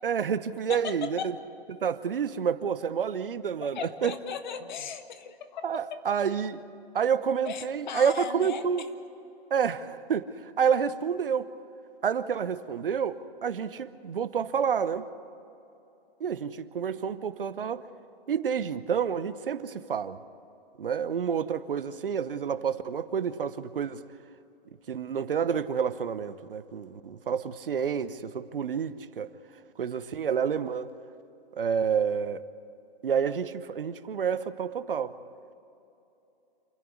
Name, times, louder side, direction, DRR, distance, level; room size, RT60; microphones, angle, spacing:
voice 1, 0.0-1.2 1.7-4.2 5.6-6.6 6.9-8.8 9.5-11.5 12.0-15.1 16.2-17.9 18.3-20.2 20.8-24.0 24.9-29.3 29.8-30.9 31.6-32.4 33.0-35.1, right 7 dB, 60° right, 14 dB, 1.0 m, -29 dB
voice 2, 0.7-1.4 3.7-6.1 7.4-8.9, left 7 dB, 50° left, 8 dB, 1.7 m, -37 dB
28.0 x 10.5 x 9.6 m, 2.8 s
figure-of-eight pair, 120°, 30 cm